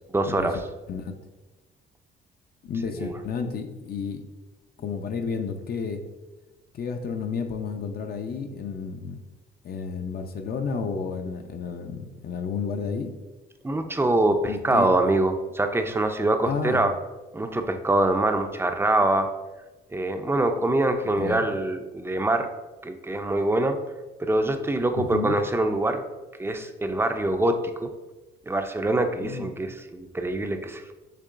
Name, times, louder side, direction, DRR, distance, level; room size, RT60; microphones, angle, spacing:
voice 1, 0.1-0.6 2.9-3.1 13.6-16.9 17.3-19.3 19.9-22.5 22.8-23.8 24.2-26.0 26.4-27.9 28.5-30.9, right 2 dB, 10° right, 6 dB, 0.4 m, -24 dB
voice 2, 2.6-4.2 4.8-6.0 6.7-9.2 9.6-13.2 14.5-14.9 16.4-16.9 21.2-21.5 25.0-25.3 29.2-29.6, left 5 dB, 50° left, 5 dB, 0.5 m, -31 dB
6.6 x 2.9 x 2.5 m, 1.2 s
cardioid pair, 90°, 20 cm